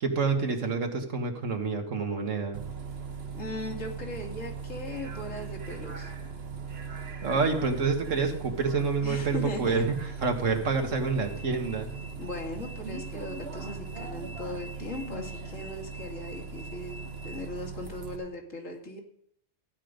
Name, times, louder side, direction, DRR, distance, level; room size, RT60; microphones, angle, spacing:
voice 1, 0.0-2.6 7.2-9.9 10.2-11.9, right 4 dB, 75° right, 4 dB, 2.0 m, -28 dB
Bus, 2.5-18.2, right 5 dB, 55° right, 1.5 m, -39 dB
voice 2, 3.3-6.1 9.0-9.8 12.2-19.0, left 2 dB, 80° left, 1 dB, 2.7 m, -38 dB
14.5 x 9.6 x 5.2 m, 0.71 s
omnidirectional pair, 1.3 m